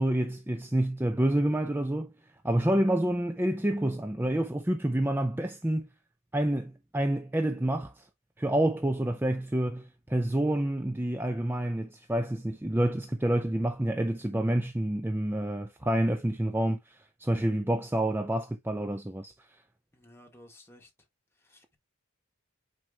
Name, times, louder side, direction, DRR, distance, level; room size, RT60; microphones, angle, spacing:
voice 1, 0.0-2.1 2.4-5.9 6.3-8.0 8.4-19.3, right 1 dB, 10° right, 0.5 m, -28 dB
voice 2, 19.9-20.9 21.4-21.8, left 1 dB, 10° left, 1.8 m, -55 dB
8.9 x 4.6 x 2.4 m
head